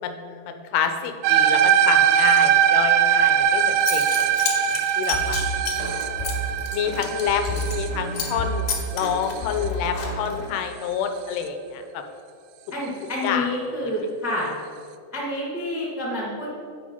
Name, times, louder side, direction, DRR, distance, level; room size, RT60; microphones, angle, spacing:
voice 1, 0.0-4.4 4.7-5.4 6.7-12.0 13.2-13.5 13.8-13.9, left 7 dB, 85° left, 7 dB, 2.6 m, -28 dB
sound 1, 1.2-9.7, right 9 dB, 85° right, 2.1 m, -21 dB
Zipper (clothing) / Coin (dropping), 3.4-3.5 3.8-7.9 8.1-8.4 8.7-10.4, left 6 dB, 65° left, 2.4 m, -31 dB
sound 2, 5.1-10.4, right 1 dB, 50° left, 1.3 m, -31 dB
voice 2, 12.7-14.5 15.1-16.5, left 1 dB, 5° right, -5 dB, 0.4 m, -28 dB
9.3 x 4.9 x 5.5 m, 2.3 s
omnidirectional pair, 4.6 m